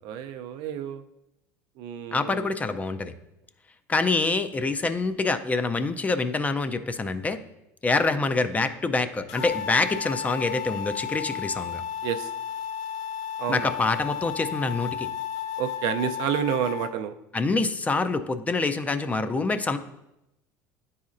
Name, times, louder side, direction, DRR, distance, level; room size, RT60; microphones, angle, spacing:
voice 1, 0.0-1.0 1.8-2.4 12.0-12.3 13.4-13.7 15.6-17.1, right 9 dB, 65° right, 9 dB, 0.4 m, -29 dB
voice 2, 2.1-3.1 3.9-7.4 7.8-11.8 13.5-15.1 17.3-19.8, left 3 dB, 20° left, 10 dB, 0.4 m, -26 dB
sound 1, 9.3-16.9, left 9 dB, 75° left, 0.5 m, -33 dB
9.5 x 4.1 x 2.5 m, 0.89 s
supercardioid pair, 105°, 8 cm